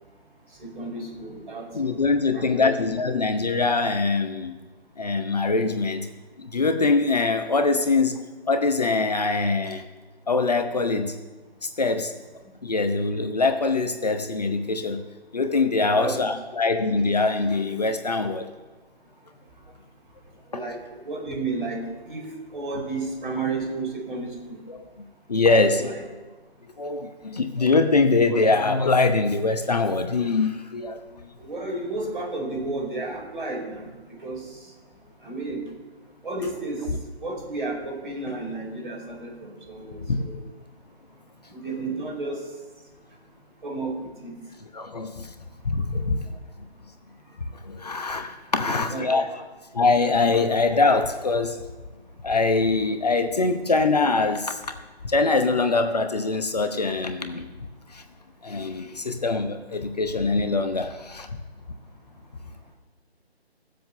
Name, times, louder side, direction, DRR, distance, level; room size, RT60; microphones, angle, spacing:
voice 1, 0.6-2.0 2.3-2.7 15.9-16.3 20.5-24.6 25.4-26.0 31.4-33.9 34.2-34.4 35.2-35.6 36.2-36.8 37.2-40.3 41.5-42.4 43.6-43.9 44.2-44.3 45.9-46.0 48.5-49.4, right 3 dB, 50° right, 0 dB, 5.0 m, -32 dB
voice 2, 1.7-4.5 5.0-6.1 6.4-9.9 10.3-11.2 11.6-12.2 12.6-15.0 15.3-18.5 24.7-24.8 25.3-26.0 26.8-31.3 40.0-40.2 44.7-45.3 45.6-46.2 47.6-49.3 49.7-51.6 52.2-54.6 55.0-57.4 57.9-58.0 58.4-61.3, left 3 dB, 40° left, 7 dB, 0.9 m, -23 dB
17.5 x 7.8 x 6.7 m, 1.2 s
figure-of-eight pair, 155°, 32 cm